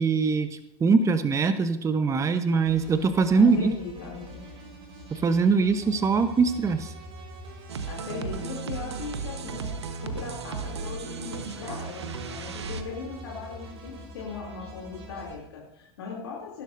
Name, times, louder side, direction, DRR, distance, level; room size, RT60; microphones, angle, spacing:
voice 1, 0.0-3.7 5.1-6.9, right 4 dB, 20° right, 10 dB, 0.9 m, -22 dB
sound 1, 2.7-15.3, right 1 dB, 45° right, 5.4 m, -45 dB
voice 2, 3.3-4.4 7.9-9.7 10.0-16.6, left 5 dB, 70° left, -4 dB, 3.0 m, -38 dB
sound 2, 7.7-12.8, right 5 dB, 85° right, 1.1 m, -35 dB
18.5 x 11.5 x 2.7 m, 0.86 s
hypercardioid pair, 85°, 14 cm